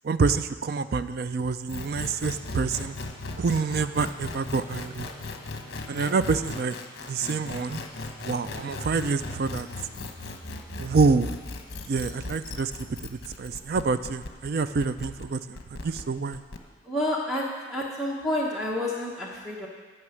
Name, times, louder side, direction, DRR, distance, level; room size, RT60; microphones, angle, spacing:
voice 1, 0.0-3.0 3.4-5.1 5.9-6.8 7.1-7.8 8.2-9.7 10.8-11.3 11.9-12.7 13.0-16.4, right 4 dB, 50° right, 12 dB, 0.4 m, -27 dB
sound 1, 1.7-16.6, left 2 dB, 50° left, 0.9 m, -37 dB
voice 2, 16.9-19.7, left 1 dB, ahead, -4 dB, 0.9 m, -29 dB
9.2 x 5.9 x 7.7 m, 1.4 s
head